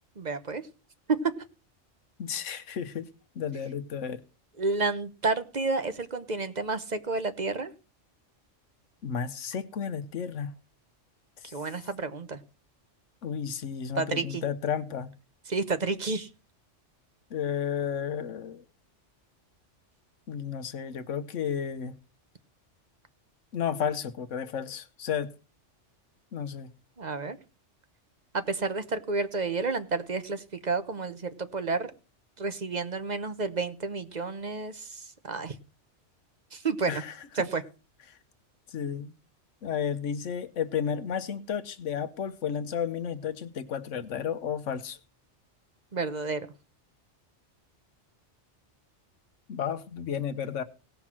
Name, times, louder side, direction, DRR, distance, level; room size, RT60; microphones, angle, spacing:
voice 1, 0.2-0.6 1.1-1.2 4.6-7.7 11.4-12.4 14.0-14.4 15.5-16.3 27.0-27.4 28.3-31.9 32.4-35.6 36.5-37.0 37.3-37.6 45.9-46.5, right 3 dB, 40° right, 1.1 m, -30 dB
voice 2, 2.2-3.1 3.3-4.2 9.0-10.5 13.2-15.1 17.3-18.6 20.3-21.9 23.5-25.3 26.3-26.7 36.9-37.5 38.1-38.2 38.7-39.1 39.6-45.0 49.5-50.6, left 8 dB, 85° left, 1.2 m, -32 dB
17.5 x 5.9 x 6.0 m
omnidirectional pair, 1.2 m